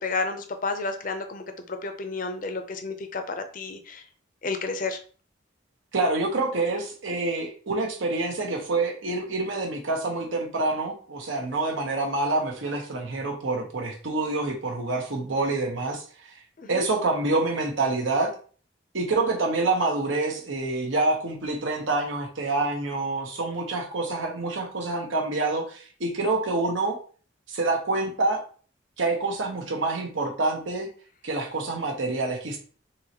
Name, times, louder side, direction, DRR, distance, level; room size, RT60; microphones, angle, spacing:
voice 1, 0.0-4.0 4.4-5.0 16.6-16.9, left 3 dB, 40° left, 7 dB, 0.5 m, -31 dB
voice 2, 5.9-16.4 16.7-18.3 18.9-27.0 27.5-28.4 29.0-30.9 31.2-32.6, right 2 dB, 75° right, 1 dB, 1.0 m, -27 dB
3.8 x 3.0 x 2.9 m, 0.41 s
head